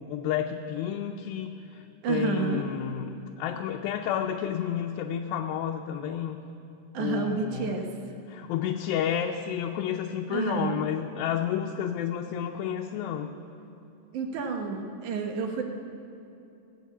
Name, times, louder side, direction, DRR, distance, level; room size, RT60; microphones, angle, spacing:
voice 1, 0.0-1.6 2.1-6.4 7.0-7.8 8.3-13.3, left 9 dB, 85° left, 2 dB, 2.4 m, -30 dB
voice 2, 2.0-2.7 6.9-7.9 10.3-10.8 14.1-15.6, right 5 dB, 65° right, 3 dB, 2.4 m, -30 dB
18.0 x 7.7 x 8.4 m, 2.8 s
omnidirectional pair, 4.1 m